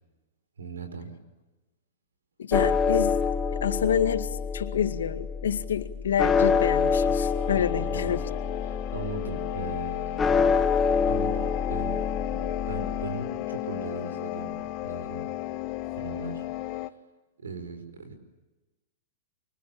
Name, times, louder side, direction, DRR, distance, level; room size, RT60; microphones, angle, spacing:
voice 1, 0.6-1.1 7.5-8.2 8.6-10.3 10.7-10.8 11.1-12.0 12.3-15.3 16.0-16.4 16.7-16.8 17.4-18.1, right 3 dB, 90° right, 9 dB, 4.9 m, -38 dB
voice 2, 2.4-3.2 3.6-8.2, left 8 dB, 80° left, 9 dB, 2.1 m, -28 dB
sound 1, 2.5-13.1, left 5 dB, 15° left, 1.7 m, -27 dB
sound 2, 6.7-16.9, left 16 dB, 45° left, 1.2 m, -34 dB
25.5 x 24.5 x 8.8 m, 1.1 s
hypercardioid pair, 120°, 0 cm